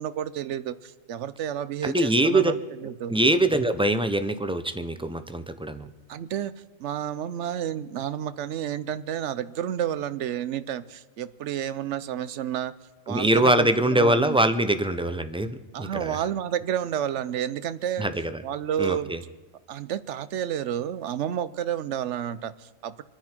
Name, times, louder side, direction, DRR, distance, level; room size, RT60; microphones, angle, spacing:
voice 1, 0.0-3.1 6.1-6.5 6.8-12.7 13.1-14.4 15.7-18.1 18.4-19.1 19.7-23.0, right 10 dB, 75° right, 15 dB, 1.0 m, -30 dB
voice 2, 1.8-2.5 3.1-5.9 13.1-16.2 18.0-18.4 18.8-19.2, right 1 dB, 5° right, 10 dB, 0.5 m, -23 dB
26.5 x 10.0 x 4.4 m, 1.3 s
omnidirectional pair, 1.2 m